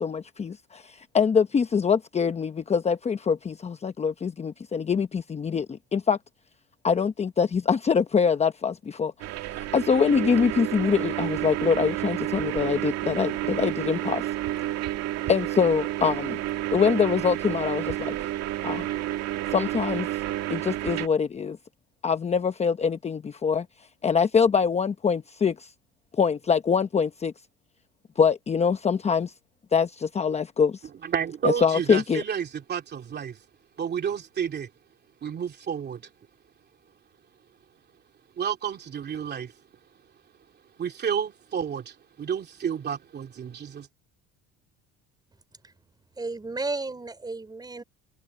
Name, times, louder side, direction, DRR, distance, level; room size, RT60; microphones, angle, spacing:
voice 1, 0.0-6.2 6.8-9.1 9.5-14.3 15.3-16.4 16.7-18.2 18.6-18.9 19.5-20.1 20.5-21.6 22.0-23.7 24.0-25.7 26.2-27.3 28.2-29.3 29.7-30.8 31.6-32.2, left 6 dB, 20° left, 0.9 m, -24 dB
sound 1, 9.2-21.1, right 14 dB, 55° right, 2.1 m, -30 dB
voice 2, 31.0-33.4 33.8-34.7 35.2-36.1 38.4-39.5 40.8-43.9, right 7 dB, 35° right, 2.9 m, -30 dB
voice 3, 46.2-47.8, right 3 dB, 15° right, 5.2 m, -33 dB
cardioid pair, 130°, 30 cm